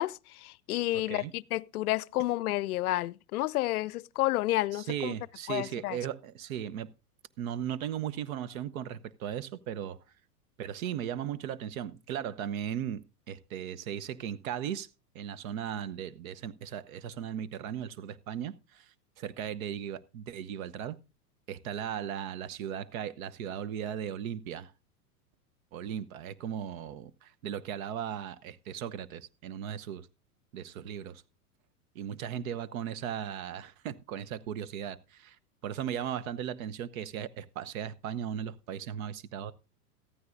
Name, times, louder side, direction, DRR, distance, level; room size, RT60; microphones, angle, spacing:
voice 1, 0.0-5.1 5.5-6.0, left 17 dB, 70° left, 0.5 m, -30 dB
voice 2, 0.9-1.3 4.7-6.9 7.4-10.0 10.6-14.9 15.1-21.0 21.5-24.7 25.7-30.1 30.5-31.2 31.9-35.4 35.6-39.5, right 9 dB, 60° right, 1.0 m, -37 dB
14.5 x 13.5 x 2.6 m
hypercardioid pair, 105°, 46 cm